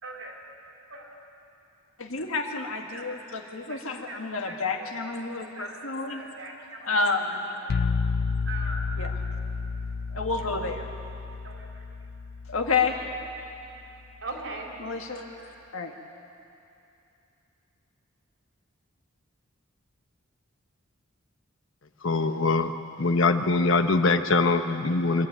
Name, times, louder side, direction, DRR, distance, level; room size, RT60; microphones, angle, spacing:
voice 1, 0.0-0.5 0.9-1.2 2.9-3.1 3.7-7.1 7.5-7.8 8.4-8.9 11.4-11.8 14.2-14.8 15.1-15.5, right 2 dB, 85° right, -1 dB, 4.1 m, -41 dB
voice 2, 2.0-6.2 6.8-7.5 9.0-9.1 10.1-10.9 12.5-13.0 14.8-15.2 15.7-15.9, left 4 dB, 85° left, 3 dB, 1.8 m, -29 dB
sound 1, 7.7-13.5, left 4 dB, 50° left, 0.4 m, -31 dB
voice 3, 22.0-22.7 23.0-25.3, left 3 dB, 65° left, 8 dB, 0.9 m, -23 dB
24.0 x 12.0 x 9.3 m, 2.8 s
head